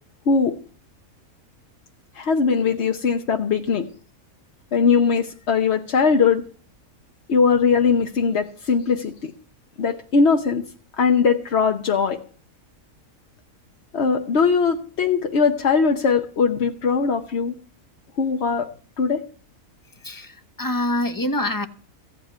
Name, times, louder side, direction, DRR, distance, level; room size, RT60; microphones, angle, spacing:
voice 1, 2.1-3.9 4.7-6.4 7.3-9.3 9.8-10.6 11.0-12.2 13.9-17.5 18.2-18.7 19.0-19.2, left 5 dB, 50° left, 4 dB, 1.1 m, -20 dB
voice 2, 20.6-21.7, left 1 dB, 15° left, 8 dB, 0.9 m, -24 dB
15.5 x 5.8 x 9.3 m, 0.42 s
omnidirectional pair, 1.5 m